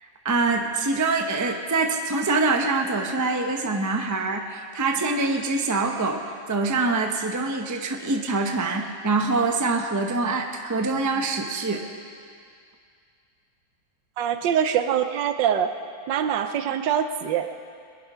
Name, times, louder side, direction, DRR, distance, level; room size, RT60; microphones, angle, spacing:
voice 1, 0.0-11.8, right 3 dB, 20° right, 3 dB, 0.5 m, -25 dB
voice 2, 14.2-15.7 16.1-17.5, right 8 dB, 75° right, 9 dB, 1.4 m, -24 dB
21.0 x 11.0 x 5.6 m, 2.3 s
omnidirectional pair, 2.0 m